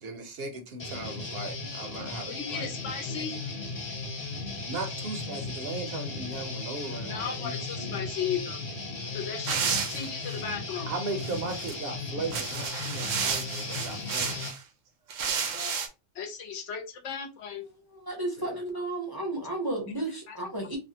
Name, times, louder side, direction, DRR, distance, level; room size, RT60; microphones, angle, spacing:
voice 1, 0.0-3.4 4.7-8.0 9.6-9.8 10.9-14.4 18.4-18.6, right 3 dB, 60° right, 0.7 m, -38 dB
Guitar, 0.8-14.5, left 3 dB, 40° left, 1.2 m, -36 dB
voice 2, 2.3-3.4 7.1-8.6 9.1-10.9 15.3-15.8 16.2-17.6 20.3-20.4, left 7 dB, 75° left, 1.0 m, -36 dB
sound 1, 9.4-10.4 11.2-11.7 12.2-14.6 15.1-15.9, right 6 dB, 80° right, 1.0 m, -31 dB
voice 3, 18.0-20.8, right 2 dB, 30° right, 0.5 m, -33 dB
3.3 x 2.1 x 2.7 m
omnidirectional pair, 1.3 m